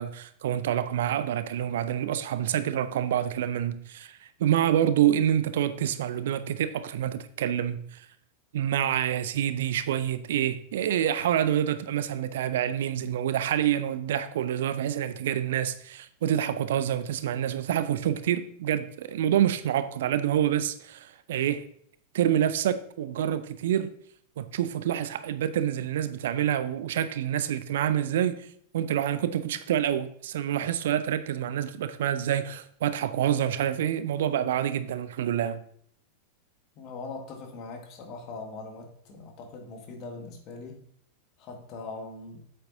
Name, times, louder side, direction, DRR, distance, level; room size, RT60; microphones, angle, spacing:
voice 1, 0.0-8.1 8.5-21.6 22.1-23.9 24.4-28.5 28.7-35.6, right 10 dB, 55° right, 13 dB, 0.5 m, -27 dB
voice 2, 36.8-40.8 41.4-42.4, left 3 dB, 40° left, 3 dB, 1.8 m, -41 dB
8.5 x 7.7 x 2.7 m, 0.63 s
figure-of-eight pair, 90°, 0 cm